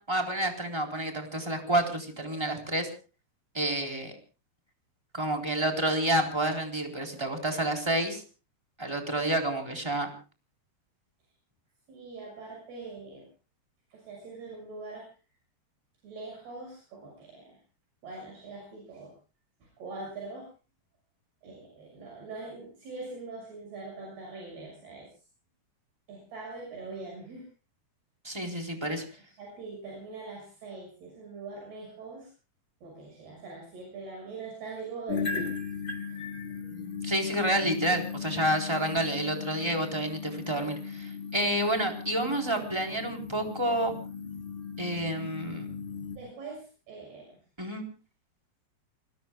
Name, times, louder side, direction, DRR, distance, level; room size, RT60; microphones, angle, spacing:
voice 1, 0.0-2.9 3.5-4.1 5.1-8.2 8.8-10.1 28.2-29.0 37.0-43.9 44.8-45.7 47.6-47.8, right 1 dB, 5° right, 2 dB, 3.4 m, -29 dB
voice 2, 11.9-13.3 13.9-15.1 16.0-17.6 18.0-19.1 19.6-20.5 21.4-25.1 26.1-27.5 28.8-28.9 29.4-32.3 32.8-35.5 36.1-36.2 36.5-36.6 46.1-47.4, right 3 dB, 70° right, 0 dB, 8.2 m, -42 dB
sound 1, 35.1-46.2, left 5 dB, 60° left, 0.5 m, -37 dB
29.5 x 20.5 x 2.3 m, 0.35 s
omnidirectional pair, 4.7 m